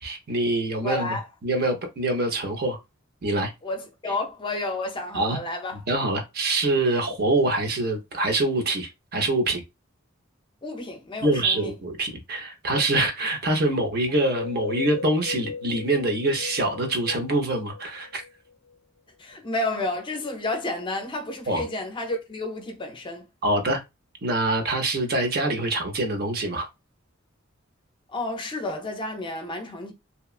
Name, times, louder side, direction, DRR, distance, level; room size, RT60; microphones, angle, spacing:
voice 1, 0.0-2.8 3.2-3.5 5.1-5.4 5.9-9.6 11.2-18.2 21.5-21.6 23.4-23.8 24.2-26.7, right 2 dB, 50° right, 0.6 m, -25 dB
voice 2, 0.8-1.3 3.6-5.8 10.6-11.7 19.2-23.3 28.1-29.9, left 2 dB, 25° left, 0.5 m, -31 dB
sound 1, 14.1-18.7, left 5 dB, 85° left, 0.4 m, -37 dB
2.8 x 2.2 x 2.3 m
head